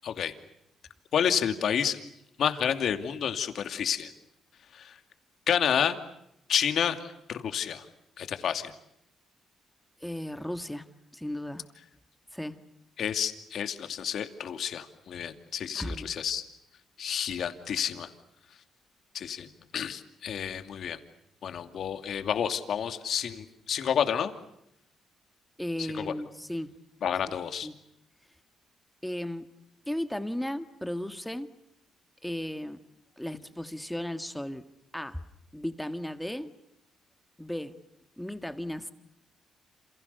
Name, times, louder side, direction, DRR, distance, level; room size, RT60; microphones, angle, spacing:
voice 1, 0.0-0.3 1.1-2.0 2.4-4.1 4.7-5.0 5.5-6.0 6.5-7.9 8.2-8.7 13.0-16.4 17.0-18.1 19.1-19.5 19.7-21.0 21.4-24.3 25.8-26.1 27.0-27.7, left 8 dB, 65° left, 8 dB, 2.5 m, -30 dB
voice 2, 10.0-10.9 11.1-11.6 12.3-12.6 15.7-16.1 25.6-26.7 27.6-27.8 29.0-29.5 29.9-31.5 32.2-32.8 33.2-34.6 34.9-35.2 35.5-36.5 37.4-37.8 38.2-38.9, left 1 dB, 5° left, 9 dB, 1.8 m, -35 dB
28.5 x 28.0 x 6.9 m, 0.80 s
cardioid pair, 90°, 0 cm